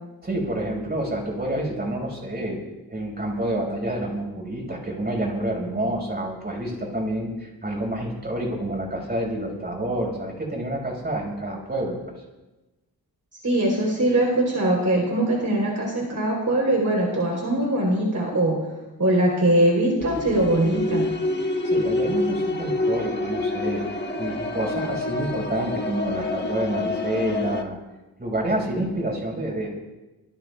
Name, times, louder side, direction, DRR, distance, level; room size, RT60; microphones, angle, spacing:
voice 1, 0.2-2.6 2.9-12.0 21.6-23.8 24.2-27.8 28.2-29.7, right 1 dB, 25° right, 0 dB, 5.5 m, -28 dB
voice 2, 13.4-18.6 19.0-21.1, right 1 dB, 50° right, -2 dB, 3.9 m, -21 dB
sound 1, 20.0-27.6, left 2 dB, 25° left, 1.3 m, -27 dB
26.0 x 20.5 x 2.4 m, 1.1 s
wide cardioid pair, 150°, 38 cm